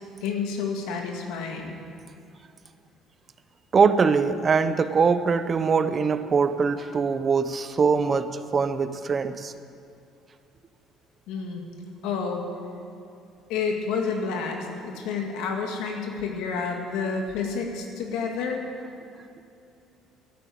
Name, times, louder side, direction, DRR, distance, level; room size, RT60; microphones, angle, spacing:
voice 1, 0.2-1.8 11.3-11.6 12.0-12.4 13.5-18.6, left 5 dB, 80° left, 2 dB, 2.2 m, -29 dB
voice 2, 3.7-9.5, right 5 dB, 30° right, 12 dB, 0.6 m, -22 dB
12.5 x 9.6 x 8.6 m, 2.6 s
cardioid pair, 120°, 0 cm